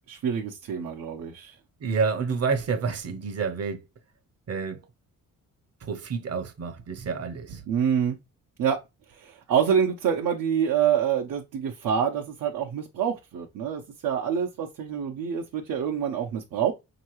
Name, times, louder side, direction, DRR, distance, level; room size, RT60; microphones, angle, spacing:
voice 1, 0.1-1.6 7.7-8.2 8.6-8.8 9.2-16.7, right 8 dB, 80° right, 0.9 m, -26 dB
voice 2, 1.8-3.8 4.5-4.8 5.8-7.6, right 5 dB, 50° right, 0.8 m, -29 dB
5.5 x 2.9 x 3.0 m
cardioid pair, 135°, 33 cm